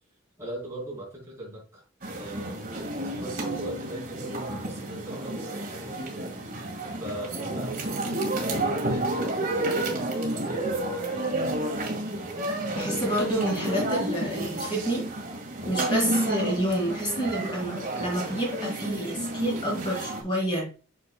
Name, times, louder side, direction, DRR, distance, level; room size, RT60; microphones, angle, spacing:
voice 1, 0.4-2.6 3.0-6.0 7.0-11.7 15.6-15.8, right 1 dB, 15° right, -5 dB, 3.7 m, -40 dB
sound 1, 2.0-20.2, right 1 dB, 45° right, 2.0 m, -31 dB
voice 2, 12.7-15.1 15.7-20.7, right 1 dB, 25° left, -4 dB, 3.3 m, -29 dB
8.3 x 6.3 x 2.3 m, 0.36 s
head